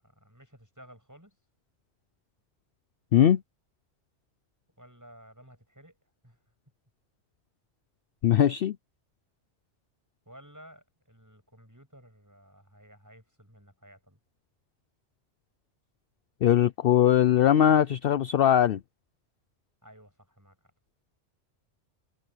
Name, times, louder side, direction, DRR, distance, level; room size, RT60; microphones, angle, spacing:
voice 1, 0.0-1.4 4.8-6.0 6.2-6.4 10.3-14.2 19.8-20.7, equal, 15° right, 7.6 m, -54 dB
voice 2, 8.2-8.8 16.4-18.8, left 10 dB, 60° left, 0.7 m, -21 dB
omnidirectional pair, 1.2 m